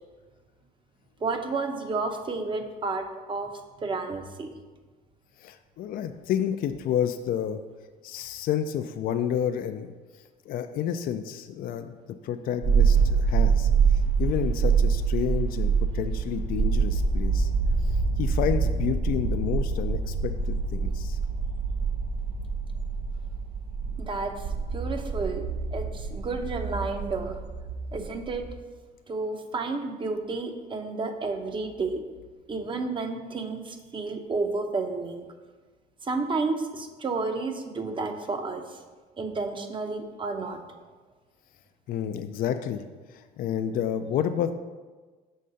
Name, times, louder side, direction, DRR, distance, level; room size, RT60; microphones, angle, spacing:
voice 1, 1.2-3.5 3.8-4.5 24.0-25.4 25.7-27.4 27.9-28.5 29.1-32.0 32.5-35.2 36.0-38.8 39.2-40.6, right 3 dB, 30° right, 6 dB, 0.7 m, -31 dB
voice 2, 5.4-7.6 8.0-9.9 10.5-12.0 12.2-17.5 18.2-21.2 41.9-42.8 43.1-44.6, left 9 dB, 60° left, 8 dB, 0.4 m, -30 dB
sound 1, 12.6-28.5, right 5 dB, 70° right, 2.2 m, -26 dB
6.5 x 3.7 x 5.6 m, 1.3 s
cardioid pair, 110°, 17 cm